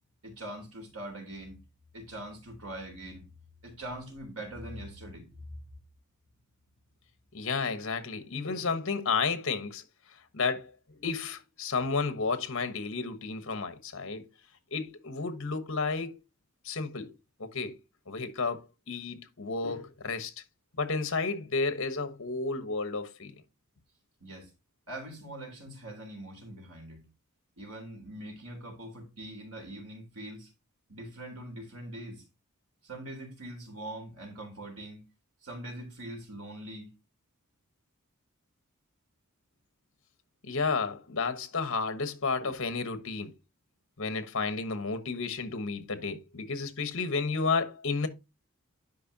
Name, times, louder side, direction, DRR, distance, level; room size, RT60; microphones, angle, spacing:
voice 1, 0.2-1.6 1.9-3.3 3.6-5.6 24.2-24.5 24.9-27.0 27.6-30.5 30.9-32.2 32.8-35.0 35.4-36.9, right 1 dB, 80° right, 3.5 m, -42 dB
voice 2, 7.3-14.3 14.7-16.2 16.6-17.1 17.4-17.8 18.1-20.4 20.8-23.3 40.4-43.3 44.0-48.1, left 4 dB, 60° left, 1.1 m, -32 dB
11.0 x 5.3 x 2.7 m
head